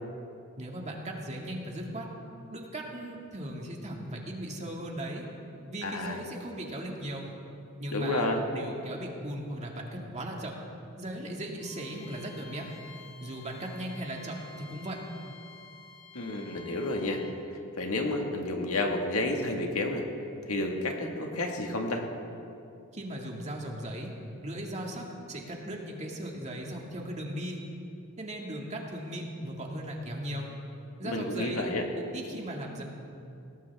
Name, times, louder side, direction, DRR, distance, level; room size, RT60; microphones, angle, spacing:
voice 1, 0.6-2.1 2.5-5.2 5.7-7.3 7.8-10.5 11.0-12.7 13.2-15.0 22.9-24.1 24.4-27.6 28.2-30.5 31.0-31.7 32.1-32.8, right 1 dB, 30° right, -1 dB, 2.2 m, -37 dB
voice 2, 5.8-6.2 7.9-8.4 16.1-17.2 17.8-20.1 20.5-22.1 31.0-31.9, left 2 dB, 75° left, 2 dB, 1.8 m, -30 dB
Bowed string instrument, 11.6-17.3, left 4 dB, 35° left, 3.5 m, -51 dB
21.5 x 17.5 x 3.6 m, 2.6 s
head